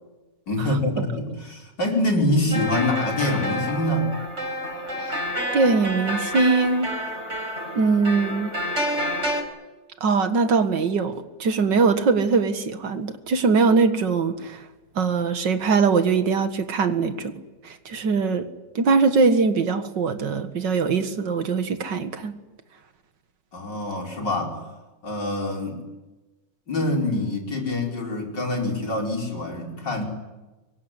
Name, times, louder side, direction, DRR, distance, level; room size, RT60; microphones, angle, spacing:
voice 1, 0.5-4.1 23.5-24.6 25.0-25.8 26.7-30.0, left 1 dB, 85° left, 1 dB, 5.7 m, -25 dB
sound 1, 2.5-9.4, equal, 40° right, 5.4 m, -29 dB
voice 2, 5.5-6.9 7.7-8.6 10.0-14.6 15.0-17.3 17.6-18.5 18.8-22.3, right 4 dB, 85° right, 9 dB, 2.4 m, -21 dB
25.0 x 23.0 x 9.9 m, 1.1 s
omnidirectional pair, 1.9 m